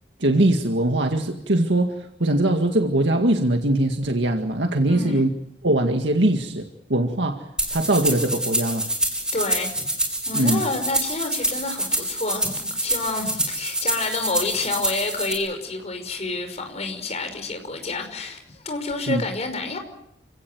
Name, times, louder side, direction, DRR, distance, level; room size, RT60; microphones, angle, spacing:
voice 1, 0.2-5.3 5.6-8.9 10.3-10.6 19.1-19.2, right 1 dB, 80° right, 2.0 m, -21 dB
voice 2, 4.9-5.3 9.3-9.9 10.3-19.8, left 3 dB, 35° left, 5.6 m, -29 dB
sound 1, 7.6-15.3, right 1 dB, 5° right, 5.3 m, -26 dB
29.5 x 17.5 x 9.4 m
head